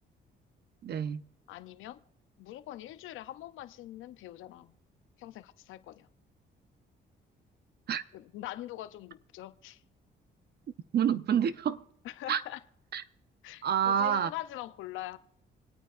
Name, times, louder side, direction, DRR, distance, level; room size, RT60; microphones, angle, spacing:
voice 1, 0.8-1.3 7.9-8.0 10.9-11.8 12.3-12.4 12.9-13.0 13.6-14.3, right 8 dB, 55° right, 0.7 m, -28 dB
voice 2, 1.5-2.0 2.4-4.7 5.2-6.1 8.1-9.8 12.0-12.6 13.4-15.2, left 14 dB, 85° left, 0.5 m, -43 dB
27.0 x 9.1 x 2.4 m
cardioid pair, 90°, 20 cm